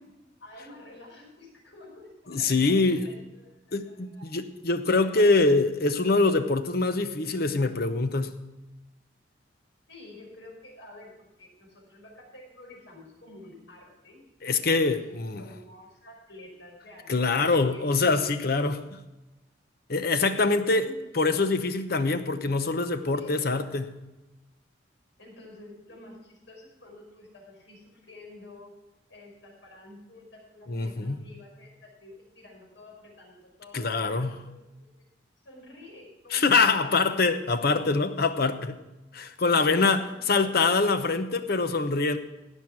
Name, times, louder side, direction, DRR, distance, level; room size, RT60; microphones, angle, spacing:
voice 1, 0.4-4.5 4.9-5.3 9.9-14.2 14.6-15.0 15.4-17.9 20.5-21.0 23.1-23.8 25.2-28.8 29.1-35.1 35.4-36.4 36.7-37.3 39.6-40.6, left 1 dB, 75° left, -1 dB, 5.3 m, -49 dB
voice 2, 2.3-3.0 3.7-8.4 14.4-15.4 17.1-19.0 19.9-20.9 21.1-23.9 30.7-31.2 33.7-34.4 36.3-38.8 39.1-42.2, left 3 dB, 55° left, 10 dB, 0.9 m, -24 dB
16.5 x 6.4 x 6.0 m, 1.0 s
head